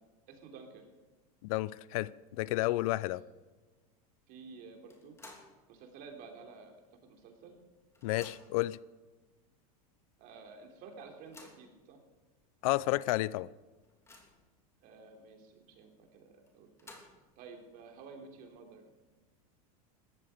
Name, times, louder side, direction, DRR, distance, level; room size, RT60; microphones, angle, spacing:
voice 1, 0.3-0.9 3.0-3.2 4.3-5.2 5.7-6.7 7.1-7.6 10.2-12.0 14.8-16.9 17.4-18.8, right 4 dB, 50° right, 3.4 m, -51 dB
voice 2, 1.4-2.1 2.4-3.2 8.0-8.8 12.6-13.5, left 18 dB, 65° left, 0.5 m, -31 dB
sound 1, 4.9-5.6 6.0-6.1 7.2-7.3 7.6-8.7 9.4-9.5 9.9-10.0 11.0-11.7 12.4-12.5 12.9-13.0 13.5-14.5 16.5-17.4, left 2 dB, 15° left, 3.1 m, -55 dB
17.5 x 14.0 x 5.0 m
supercardioid pair, 130°, 19 cm